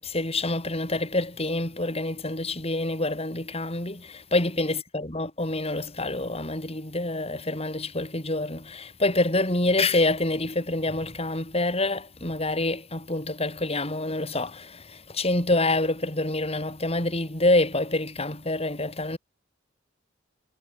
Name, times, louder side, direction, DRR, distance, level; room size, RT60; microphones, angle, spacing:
voice 1, 0.0-19.2, left 2 dB, 30° left, 6.3 m, -27 dB
head